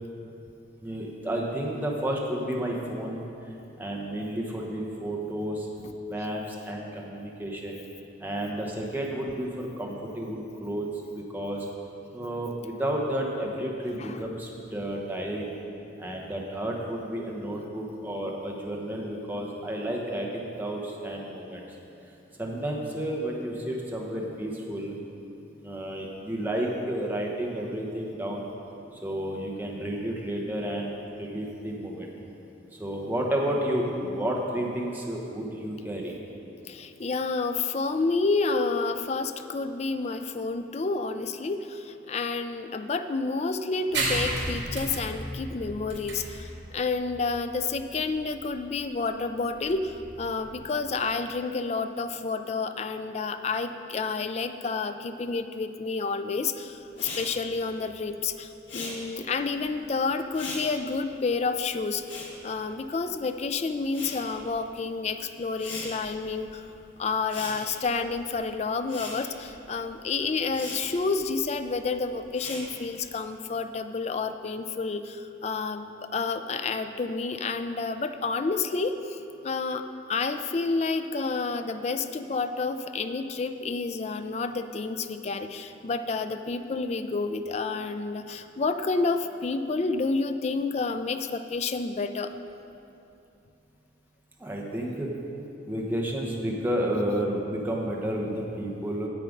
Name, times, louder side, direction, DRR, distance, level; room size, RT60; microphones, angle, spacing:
voice 1, 0.8-3.2 3.8-5.7 6.1-7.8 8.2-11.7 12.1-15.5 16.0-21.6 22.4-25.0 25.6-28.5 29.0-30.9 31.2-32.1 32.8-36.1 94.4-95.1 95.7-99.1, right 1 dB, 10° right, -2 dB, 1.0 m, -31 dB
voice 2, 36.7-62.0 62.4-66.7 67.0-79.2 79.4-92.3, left 4 dB, 35° left, 9 dB, 0.4 m, -29 dB
sound 1, 43.9-51.1, right 2 dB, 70° right, 2.6 m, -34 dB
Respiratory sounds, 56.9-63.4 63.6-73.1, left 3 dB, 85° left, 1.6 m, -41 dB
9.7 x 7.7 x 5.2 m, 2.8 s
head